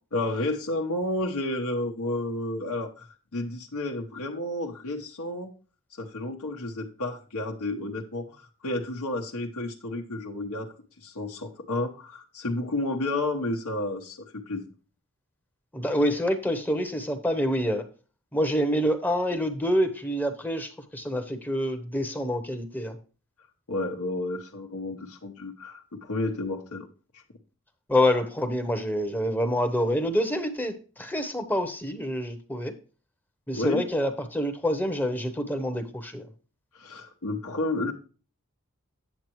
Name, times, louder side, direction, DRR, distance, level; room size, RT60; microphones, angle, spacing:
voice 1, 0.1-5.5 5.9-14.6 23.7-26.9 27.1-27.2 33.5-33.8 36.7-37.9, left 2 dB, 85° left, 0 dB, 0.9 m, -31 dB
voice 2, 15.7-17.8 18.3-23.0 27.9-32.7 33.5-36.3, equal, 10° left, 7 dB, 0.7 m, -27 dB
9.0 x 7.5 x 3.0 m, 0.36 s
head